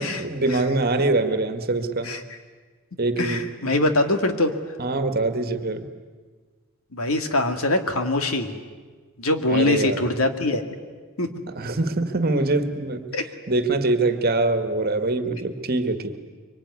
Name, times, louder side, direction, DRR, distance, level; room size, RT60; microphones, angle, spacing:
voice 1, 0.0-2.1 3.0-3.5 4.8-5.9 9.5-10.0 11.5-13.1 13.5-16.2, right 2 dB, 45° right, 9 dB, 1.8 m, -24 dB
voice 2, 3.2-4.5 6.9-8.6 9.2-10.6 11.2-11.3 13.1-13.2, left 2 dB, 80° left, 6 dB, 2.3 m, -23 dB
25.0 x 24.5 x 9.7 m, 1.5 s
head